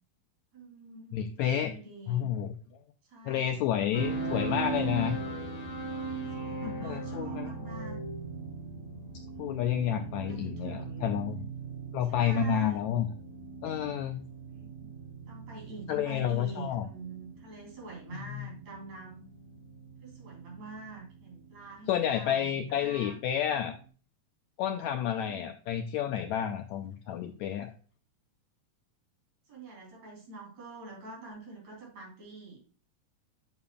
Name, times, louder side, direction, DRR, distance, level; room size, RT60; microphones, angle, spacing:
voice 1, 0.5-2.3 3.0-3.6 6.3-8.0 9.9-11.2 12.1-12.8 14.5-14.9 15.3-19.2 20.0-23.2 23.5-23.6 25.2-25.5 29.5-32.6, right 3 dB, 55° right, -1 dB, 4.1 m, -46 dB
voice 2, 1.1-1.7 2.1-2.5 3.3-5.2 6.6-7.5 9.4-11.4 11.9-13.1 13.6-14.2 15.9-16.8 18.1-18.5 21.9-23.8 24.6-27.7, left 9 dB, 85° left, 7 dB, 1.6 m, -30 dB
sound 1, 3.9-23.9, right 3 dB, 45° left, 1.3 m, -39 dB
8.9 x 6.7 x 2.2 m, 0.40 s
omnidirectional pair, 3.8 m